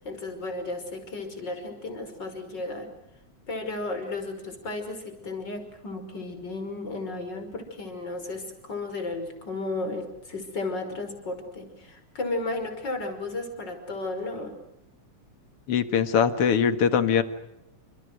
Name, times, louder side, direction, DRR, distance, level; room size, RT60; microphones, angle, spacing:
voice 1, 0.0-2.9 3.5-14.5, left 2 dB, 35° left, 6 dB, 6.0 m, -34 dB
voice 2, 15.7-17.2, left 7 dB, 55° left, 10 dB, 2.6 m, -22 dB
29.5 x 28.0 x 6.5 m, 0.87 s
omnidirectional pair, 3.3 m